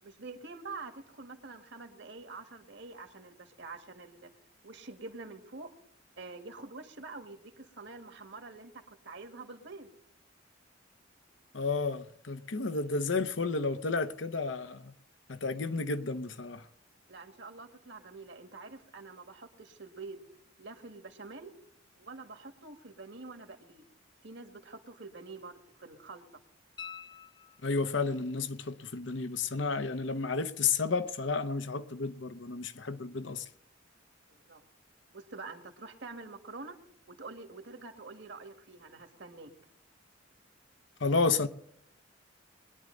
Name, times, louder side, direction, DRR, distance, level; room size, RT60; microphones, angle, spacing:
voice 1, 0.0-4.3 4.6-5.7 6.2-9.9 17.1-20.3 20.6-21.5 22.0-23.8 24.2-26.2 34.3-34.6 35.1-36.8 37.1-39.5, right 3 dB, 60° right, 1.9 m, -46 dB
voice 2, 11.5-14.9 15.3-16.7 27.6-33.4 41.0-41.5, left 4 dB, 65° left, 0.9 m, -31 dB
sound 1, 26.8-28.1 30.9-31.0, left 7 dB, 25° left, 0.6 m, -47 dB
22.0 x 10.5 x 3.9 m
head